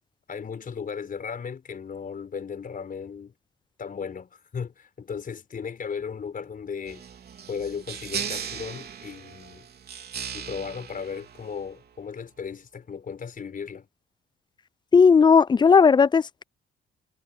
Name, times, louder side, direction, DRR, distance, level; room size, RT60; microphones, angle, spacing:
voice 1, 0.3-3.3 3.8-7.0 7.5-9.6 10.3-13.9, left 6 dB, 45° left, 5.1 m, -36 dB
sound 1, 6.9-11.9, right 7 dB, 55° right, 3.7 m, -37 dB
voice 2, 14.9-16.4, left 5 dB, 25° left, 0.3 m, -16 dB
cardioid pair, 90°, 20 cm